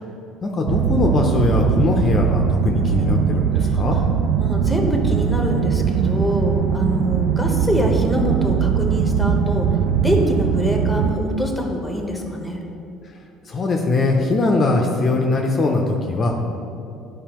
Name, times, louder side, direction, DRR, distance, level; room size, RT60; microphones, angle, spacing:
voice 1, 0.4-4.0 13.5-16.4, left 2 dB, 35° left, 1 dB, 0.6 m, -20 dB
sound 1, 0.7-11.2, right 7 dB, 65° right, 0.3 m, -20 dB
voice 2, 4.4-9.7 10.0-12.6, equal, ahead, 2 dB, 0.9 m, -24 dB
10.0 x 4.8 x 3.0 m, 2.8 s
cardioid pair, 130°, 0 cm